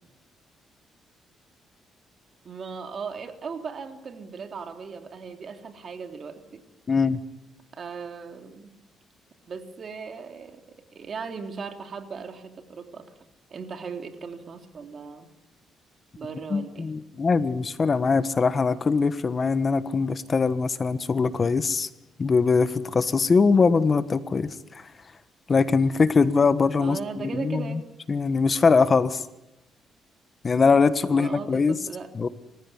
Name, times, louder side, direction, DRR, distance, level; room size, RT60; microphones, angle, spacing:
voice 1, 2.4-6.6 7.7-8.7 9.5-13.1 13.5-15.3 16.2-16.9 26.8-27.9 31.1-32.1, right 5 dB, 50° right, 6 dB, 3.2 m, -38 dB
voice 2, 6.9-7.2 16.5-21.9 22.2-24.8 25.5-27.8 28.1-29.2 30.4-31.8 32.1-32.3, left 4 dB, 35° left, 13 dB, 1.3 m, -22 dB
29.0 x 15.5 x 9.9 m, 0.89 s
cardioid pair, 90°, 0 cm